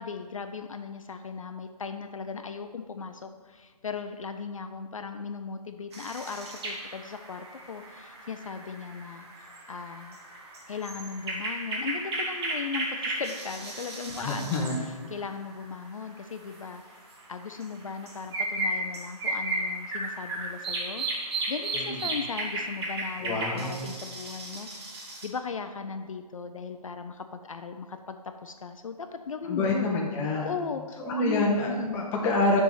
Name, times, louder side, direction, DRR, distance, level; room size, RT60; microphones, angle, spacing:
voice 1, 0.0-10.2 10.7-14.5 15.1-16.8 17.3-29.9 30.4-32.1, left 5 dB, 55° left, 7 dB, 0.5 m, -37 dB
sound 1, 5.9-15.6 16.0-16.1 16.5-25.3, right 2 dB, 40° right, 1.5 m, -35 dB
voice 2, 14.2-14.8 21.7-22.1 23.2-23.9 29.5-30.5 31.0-32.6, left 2 dB, 10° left, -2 dB, 0.7 m, -27 dB
6.7 x 3.6 x 6.2 m, 1.5 s
figure-of-eight pair, 140°, 20 cm